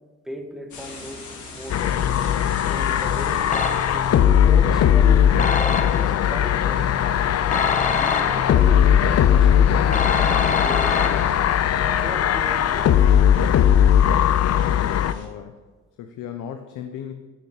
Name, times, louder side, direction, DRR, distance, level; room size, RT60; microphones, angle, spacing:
voice 1, 0.2-2.0 2.7-3.5 3.9-7.0 7.9-8.9 9.3-11.3 11.8-13.6, equal, ahead, 3 dB, 1.8 m, -37 dB
sound 1, 0.7-15.3, left 3 dB, 70° left, 3.1 m, -44 dB
sound 2, 1.7-15.1, left 9 dB, 55° left, 0.6 m, -19 dB
sound 3, 3.5-4.2 5.4-6.3 7.5-8.7 9.9-11.6, left 4 dB, 25° left, 0.9 m, -26 dB
voice 2, 14.7-15.6 16.0-17.1, left 9 dB, 90° left, 7 dB, 0.9 m, -36 dB
14.5 x 6.7 x 4.9 m, 1.3 s
cardioid pair, 90°, 30 cm